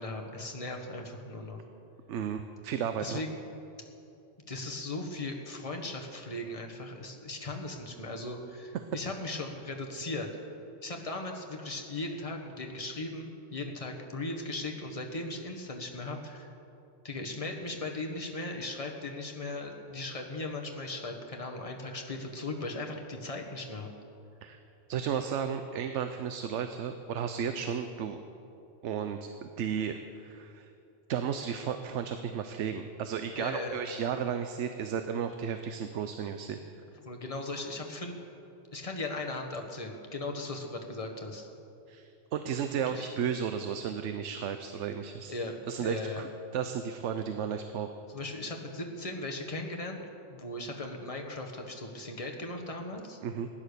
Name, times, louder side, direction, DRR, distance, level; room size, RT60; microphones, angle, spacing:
voice 1, 0.0-1.6 3.0-3.4 4.5-10.3 10.8-16.5 17.0-23.9 33.3-33.8 37.0-38.2 38.7-41.5 42.9-43.0 45.3-46.2 48.1-50.0 50.3-53.2, left 2 dB, 30° left, 2 dB, 1.4 m, -38 dB
voice 2, 2.1-3.2 24.4-24.6 24.9-28.2 28.8-30.7 31.1-36.6 41.9-45.3 45.7-47.9 53.2-53.5, right 7 dB, 75° right, 8 dB, 1.0 m, -34 dB
15.5 x 10.5 x 6.8 m, 2.8 s
omnidirectional pair, 1.2 m